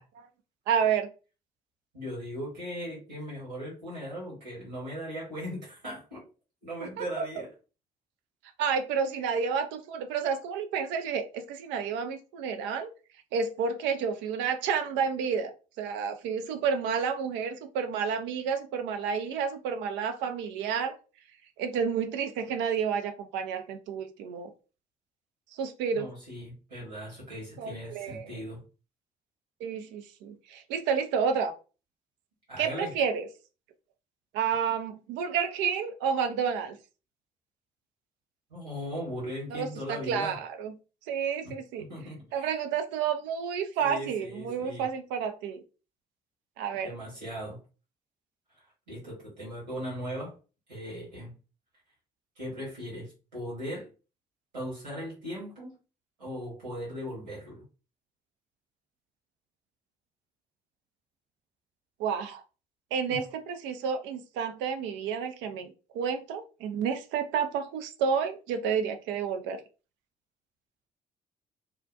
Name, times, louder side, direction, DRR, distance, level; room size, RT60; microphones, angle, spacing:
voice 1, 0.7-1.1 7.0-7.2 8.6-12.9 13.3-15.5 15.8-20.9 21.6-24.5 25.6-26.1 27.6-28.4 29.6-31.5 32.6-33.3 34.3-36.8 39.5-40.7 41.1-41.8 42.3-45.6 46.6-46.9 62.0-62.4 62.9-69.6, right 6 dB, 60° right, 6 dB, 0.5 m, -30 dB
voice 2, 1.9-6.2 6.6-7.5 25.9-28.6 32.5-32.9 38.5-40.4 41.4-42.5 43.8-44.9 46.8-47.6 48.6-50.3 50.7-51.4 52.4-53.9 54.5-55.8 56.2-57.6 63.0-63.2, equal, 85° right, -7 dB, 1.2 m, -38 dB
2.4 x 2.1 x 2.5 m, 0.33 s
figure-of-eight pair, 45°, 21 cm